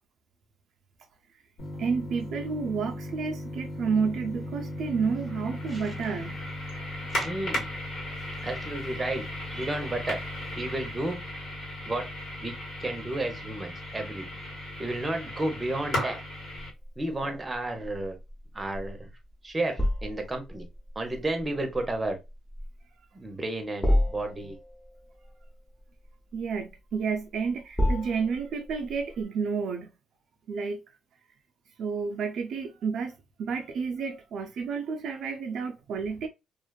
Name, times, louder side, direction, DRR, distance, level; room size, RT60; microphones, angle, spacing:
sound 1, 1.6-16.7, left 1 dB, 75° left, 1.4 m, -36 dB
voice 1, 1.8-6.4 26.3-29.9 30.5-30.8 31.8-36.3, right 5 dB, 70° right, 0.4 m, -30 dB
voice 2, 7.1-7.7 8.4-10.2 10.6-11.2 11.8-12.1 12.4-14.3 14.8-16.2 17.0-18.2 18.5-19.1 19.4-20.7 21.0-22.2 23.1-24.6, right 2 dB, 20° right, 0.7 m, -32 dB
sound 2, 16.5-29.2, left 1 dB, 20° left, 0.7 m, -32 dB
2.4 x 2.2 x 2.2 m
cardioid pair, 90°, 0 cm